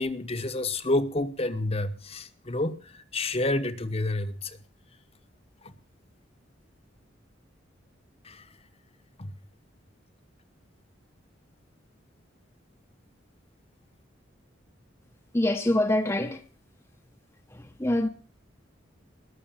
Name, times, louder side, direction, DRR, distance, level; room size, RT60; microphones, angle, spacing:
voice 1, 0.0-4.6 5.6-5.7 8.2-8.5 9.2-9.3, left 2 dB, 30° left, 1.2 m, -29 dB
voice 2, 15.3-16.4 17.5-18.1, left 1 dB, 15° left, 0.9 m, -25 dB
20.0 x 6.8 x 8.9 m
head